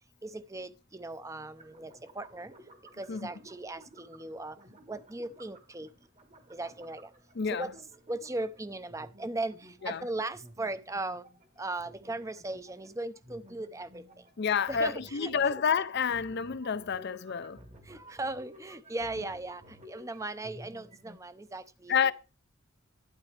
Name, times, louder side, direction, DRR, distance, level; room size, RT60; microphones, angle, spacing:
voice 1, 0.2-2.5 3.0-4.6 4.9-5.9 6.5-7.1 7.6-7.7 8.1-11.2 11.6-14.0 14.7-15.6 17.9-22.1, right 2 dB, 15° right, 0.6 m, -38 dB
sound 1, 1.6-21.2, equal, 35° right, 1.3 m, -54 dB
voice 2, 7.3-7.7 9.8-10.1 14.4-17.6 21.9-22.1, left 6 dB, 55° left, 0.6 m, -29 dB
11.5 x 9.6 x 3.3 m
head